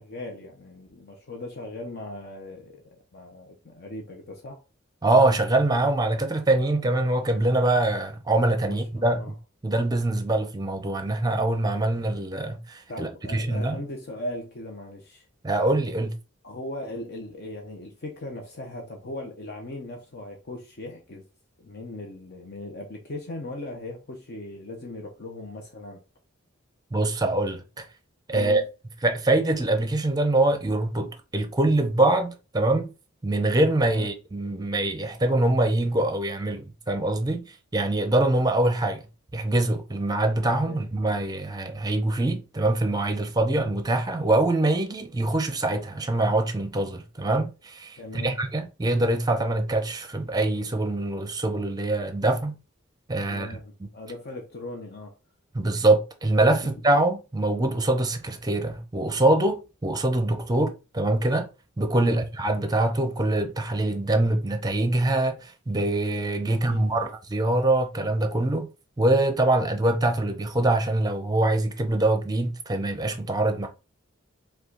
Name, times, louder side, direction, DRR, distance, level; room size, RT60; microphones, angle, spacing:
voice 1, 0.0-4.6 8.7-9.3 12.9-15.2 16.4-21.2 21.6-26.0 28.3-28.6 33.9-34.1 40.7-40.8 48.0-48.4 53.2-55.1 56.6-56.7 62.0-62.2 66.5-67.1, left 1 dB, 50° left, 0.7 m, -38 dB
voice 2, 5.0-9.2 9.6-13.8 15.4-16.1 26.9-27.9 28.3-28.6 29.0-32.9 33.2-39.0 39.3-52.6 53.1-53.6 55.5-61.5 61.8-68.7 69.0-73.7, right 2 dB, 20° right, 0.6 m, -24 dB
5.4 x 2.3 x 3.8 m
head